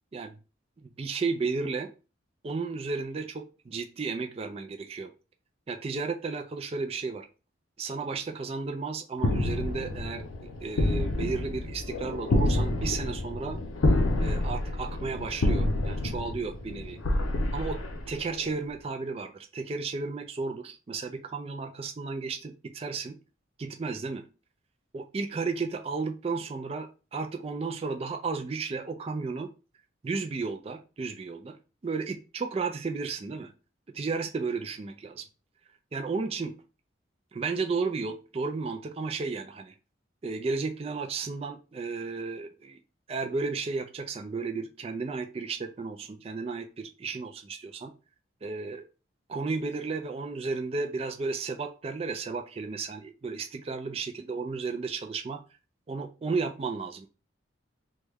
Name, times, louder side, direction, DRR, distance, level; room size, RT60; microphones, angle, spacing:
voice 1, 0.8-1.9 2.4-5.1 5.7-7.3 7.8-10.2 10.6-13.6 14.2-17.0 17.5-23.2 23.6-24.2 24.9-29.5 30.0-31.6 31.8-33.5 33.9-35.2 35.9-36.5 37.3-39.7 40.2-42.8 43.1-47.9 48.4-48.8 49.3-55.4 55.9-57.1, right 4 dB, 30° right, 5 dB, 0.3 m, -33 dB
sound 1, 9.2-18.5, left 1 dB, 90° left, 0.6 m, -28 dB
3.1 x 2.2 x 3.3 m, 0.33 s
head